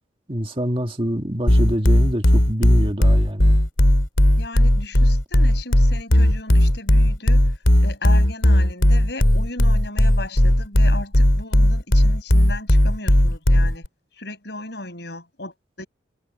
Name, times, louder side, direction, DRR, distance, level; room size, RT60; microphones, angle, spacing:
voice 1, 0.3-3.6, equal, 30° right, 1.9 m, -25 dB
sound 1, 1.5-13.9, left 1 dB, 85° left, 2.8 m, -16 dB
voice 2, 4.4-7.4 7.8-13.8 14.2-15.9, left 2 dB, 60° left, 6.9 m, -36 dB
head